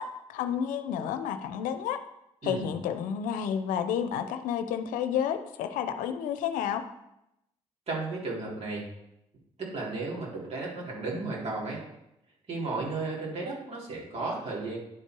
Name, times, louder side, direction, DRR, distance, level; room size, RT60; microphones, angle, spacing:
voice 1, 0.0-2.0 2.4-6.8, left 8 dB, 90° left, 10 dB, 0.6 m, -30 dB
voice 2, 7.9-8.9 9.6-11.8 12.5-14.8, right 3 dB, 50° right, -4 dB, 3.6 m, -34 dB
10.5 x 4.5 x 4.6 m, 0.85 s
supercardioid pair, 60°, 13 cm